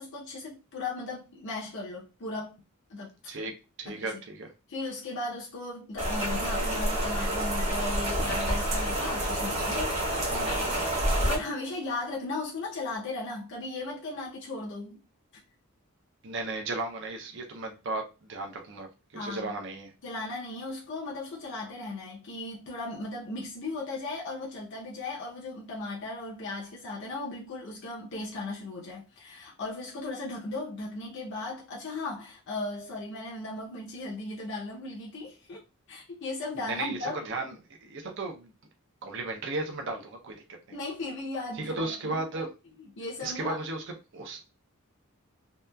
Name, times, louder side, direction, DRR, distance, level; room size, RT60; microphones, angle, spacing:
voice 1, 0.0-2.5 2.9-3.3 3.9-4.1 4.7-9.9 11.2-15.0 19.1-19.5 20.0-35.6 35.9-37.2 40.7-42.2 42.8-43.6, left 2 dB, 55° left, 0.6 m, -36 dB
voice 2, 3.8-4.5 10.3-10.7 11.2-11.4 16.2-18.9 19.1-19.9 36.6-37.5 37.8-38.5 39.0-40.3 41.5-42.5 43.2-43.8 44.1-44.4, right 3 dB, 55° right, 0.6 m, -35 dB
Rain, 6.0-11.4, right 1 dB, 30° right, 1.0 m, -28 dB
2.8 x 2.3 x 2.2 m
head